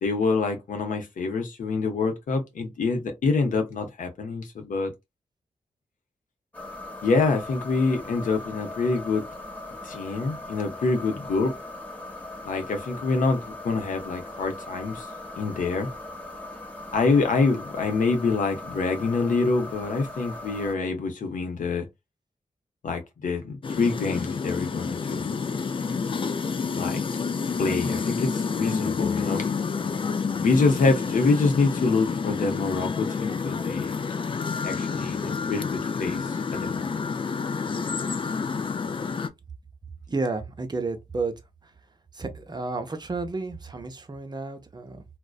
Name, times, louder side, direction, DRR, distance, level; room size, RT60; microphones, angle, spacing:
voice 1, 0.0-4.9 7.0-9.2 9.8-11.5 12.4-15.1 15.4-15.9 16.9-21.9 22.8-25.3 26.7-27.0 27.6-29.5 30.4-33.9 34.6-37.0, left 4 dB, 75° left, 0.7 m, -26 dB
sound 1, 6.5-20.7, left 2 dB, 10° left, 0.9 m, -39 dB
sound 2, 23.6-39.3, left 5 dB, 40° left, 0.4 m, -29 dB
voice 2, 40.1-41.3 41.6-41.7 42.1-45.1, right 3 dB, 30° right, 0.6 m, -31 dB
2.5 x 2.1 x 2.3 m
cardioid pair, 50°, 14 cm